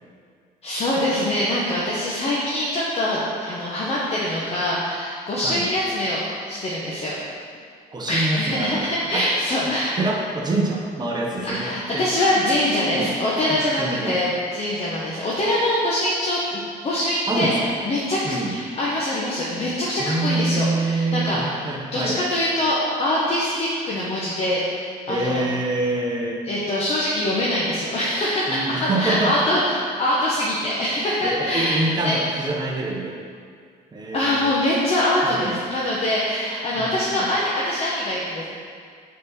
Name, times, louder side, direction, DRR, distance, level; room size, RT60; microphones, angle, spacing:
voice 1, 0.6-7.2 8.1-10.0 11.4-21.6 21.9-25.4 26.5-32.2 34.1-38.4, left 1 dB, 35° left, -6 dB, 1.1 m, -24 dB
voice 2, 7.9-8.9 9.1-9.3 10.0-12.1 12.9-13.1 13.5-14.2 17.3-17.7 18.2-18.6 20.0-22.2 25.1-26.4 28.5-29.3 31.2-33.2 33.9-34.6 35.2-35.6 36.7-37.3, right 2 dB, 25° right, -1 dB, 1.1 m, -26 dB
6.3 x 4.2 x 6.0 m, 2.2 s
cardioid pair, 110°, 17 cm